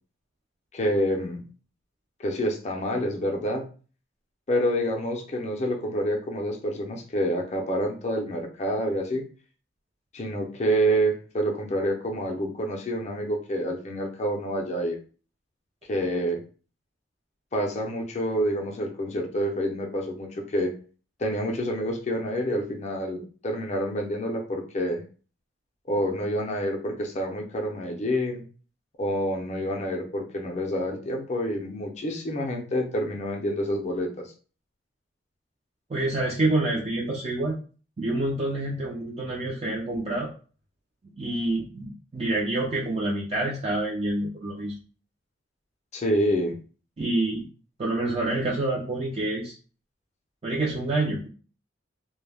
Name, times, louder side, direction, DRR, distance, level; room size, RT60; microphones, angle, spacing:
voice 1, 0.7-1.4 2.2-3.7 4.5-9.2 10.1-15.0 15.9-16.4 17.5-20.7 21.2-25.0 25.9-28.4 29.0-34.3 45.9-46.6, equal, 40° left, 2 dB, 0.5 m, -27 dB
voice 2, 35.9-37.6 38.0-40.3 41.2-44.7 47.0-47.5 47.8-49.5 50.4-51.3, right 2 dB, 35° right, -3 dB, 0.4 m, -27 dB
2.2 x 2.0 x 3.3 m, 0.39 s
head